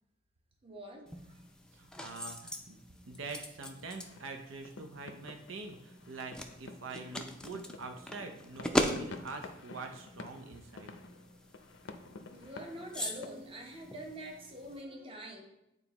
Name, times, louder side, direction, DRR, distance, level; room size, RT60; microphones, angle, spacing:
voice 1, 0.6-1.4 12.3-15.4, right 1 dB, 30° right, 1 dB, 1.0 m, -45 dB
sound 1, 1.1-14.8, left 1 dB, 5° left, 0.4 m, -41 dB
voice 2, 1.7-10.9, right 3 dB, 85° right, 5 dB, 0.6 m, -45 dB
sound 2, 3.7-13.3, left 3 dB, 65° left, 0.5 m, -51 dB
9.0 x 4.1 x 2.9 m, 0.88 s
head